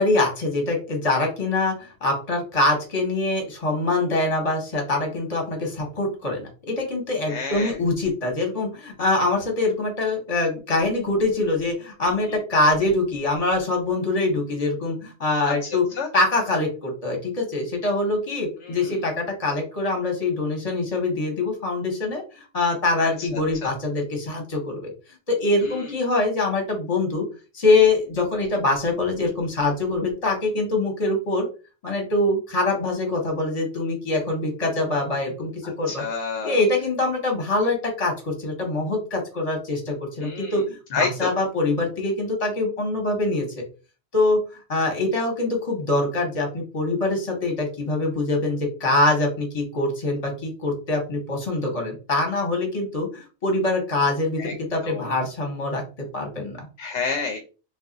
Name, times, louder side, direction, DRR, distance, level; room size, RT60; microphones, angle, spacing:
voice 1, 0.0-6.4 6.7-15.8 16.1-24.9 25.3-27.2 27.5-31.5 31.8-36.0 36.4-40.6 40.9-43.5 44.1-44.4 44.7-55.8 56.1-56.7, left 2 dB, 35° left, 2 dB, 1.0 m, -24 dB
voice 2, 7.3-7.8 12.3-12.4 15.5-16.1 18.6-19.0 23.2-23.7 25.6-25.9 35.9-36.6 40.2-40.6 40.9-41.3 54.4-54.5 54.8-55.1 56.8-57.4, left 5 dB, 85° left, 4 dB, 0.9 m, -30 dB
2.4 x 2.4 x 3.8 m, 0.34 s
omnidirectional pair, 1.2 m